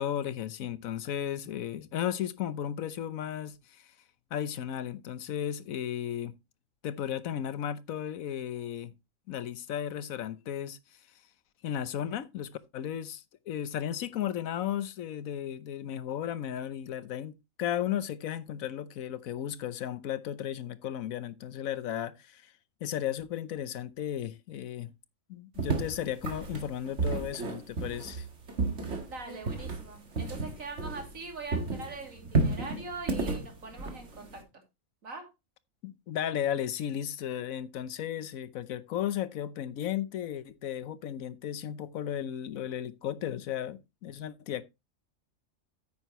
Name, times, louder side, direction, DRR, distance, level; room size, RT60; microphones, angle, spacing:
voice 1, 0.0-3.9 4.3-6.3 6.8-8.9 9.3-10.8 11.6-22.5 22.8-24.9 25.3-28.3 35.8-44.6, left 10 dB, 85° left, 1.2 m, -35 dB
sound 1, 25.6-31.3 31.5-34.4, right 3 dB, 60° right, 2.1 m, -32 dB
voice 2, 29.1-34.6 35.0-35.3, right 3 dB, 80° right, 3.1 m, -42 dB
9.1 x 9.1 x 3.0 m
omnidirectional pair, 1.4 m